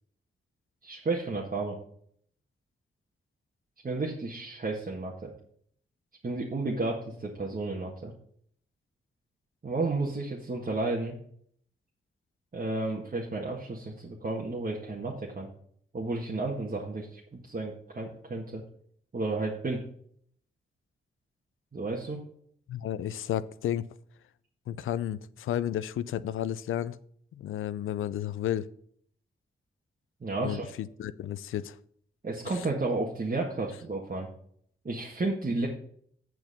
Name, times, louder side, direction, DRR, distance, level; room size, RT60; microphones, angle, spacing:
voice 1, 0.8-1.8 3.8-5.3 6.2-8.1 9.6-11.1 12.5-15.5 15.9-18.6 19.1-19.8 21.7-22.2 30.2-30.7 32.2-34.3 34.8-35.7, right 3 dB, 45° right, -2 dB, 1.6 m, -32 dB
voice 2, 22.7-23.9 24.7-27.0 27.4-28.7 30.4-31.7, left 11 dB, 85° left, 16 dB, 0.4 m, -32 dB
7.8 x 4.6 x 6.8 m, 0.64 s
cardioid pair, 50°, 20 cm